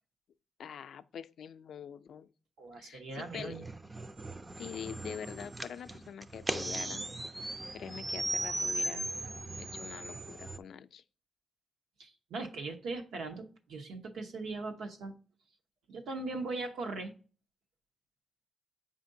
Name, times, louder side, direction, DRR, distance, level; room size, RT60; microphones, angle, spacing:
voice 1, 0.6-2.3 2.8-3.6 4.5-7.1 7.4-9.1 9.6-11.0, left 8 dB, 70° left, 0.3 m, -45 dB
voice 2, 2.6-3.7 12.0-15.1 15.9-17.1, right 3 dB, 90° right, 0.9 m, -39 dB
sound 1, 3.2-10.6, right 2 dB, 15° right, 0.3 m, -38 dB
7.6 x 5.0 x 2.6 m
cardioid pair, 130°, 0 cm